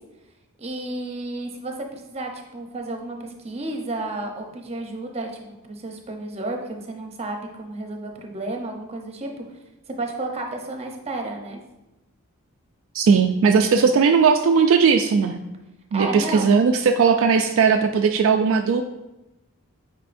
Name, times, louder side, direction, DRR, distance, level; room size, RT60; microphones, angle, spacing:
voice 1, 0.6-9.3 10.0-11.6 15.9-16.5, right 2 dB, 30° right, 2 dB, 0.8 m, -32 dB
voice 2, 12.9-15.4 15.9-18.8, right 5 dB, 65° right, 5 dB, 0.3 m, -18 dB
8.8 x 4.4 x 2.6 m, 1.0 s
head